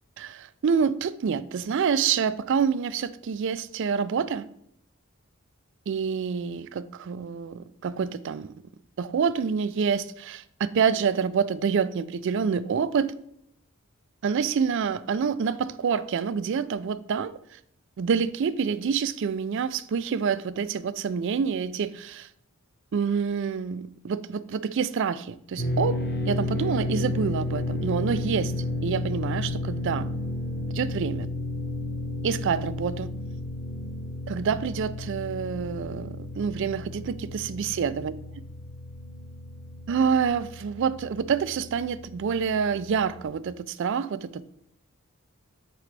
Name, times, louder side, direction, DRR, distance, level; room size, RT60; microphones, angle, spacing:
voice 1, 0.2-4.5 5.9-8.5 9.0-13.1 14.2-17.6 18.0-22.3 22.9-28.5 28.8-30.1 30.7-31.3 32.2-33.1 34.3-38.1 39.9-44.4, right 6 dB, 60° right, 0.4 m, -27 dB
sound 1, 25.6-43.2, left 2 dB, 50° left, 1.2 m, -33 dB
9.2 x 3.8 x 3.3 m
head